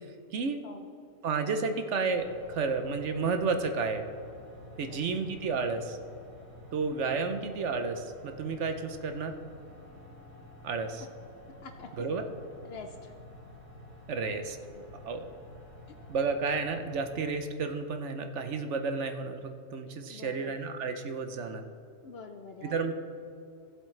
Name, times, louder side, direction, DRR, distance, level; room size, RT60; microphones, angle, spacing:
voice 1, 0.3-0.6 1.2-4.0 4.8-6.0 6.7-9.3 10.6-11.1 12.0-12.2 14.1-14.6 15.0-15.2 16.1-21.6 22.7-22.9, right 4 dB, 65° right, 7 dB, 1.0 m, -31 dB
sound 1, 2.1-17.4, left 1 dB, 85° right, 1.7 m, -51 dB
voice 2, 4.8-5.2 7.1-7.4 11.6-11.9 12.6-13.1 14.2-14.3 20.1-20.5 22.0-22.9, left 4 dB, 60° left, 6 dB, 0.7 m, -46 dB
16.0 x 7.7 x 3.2 m, 2.4 s
omnidirectional pair, 1.4 m